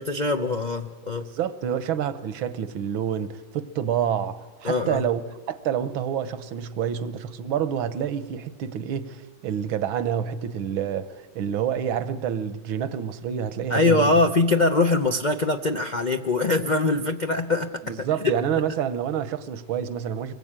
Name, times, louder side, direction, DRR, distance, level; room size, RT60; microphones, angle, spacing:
voice 1, 0.0-1.3 4.6-5.0 13.7-17.7 18.2-18.4, left 3 dB, 50° left, 0.5 m, -22 dB
voice 2, 1.2-5.2 5.5-14.1 17.8-20.3, right 9 dB, 85° right, 1.8 m, -28 dB
24.0 x 20.5 x 8.9 m
omnidirectional pair, 2.1 m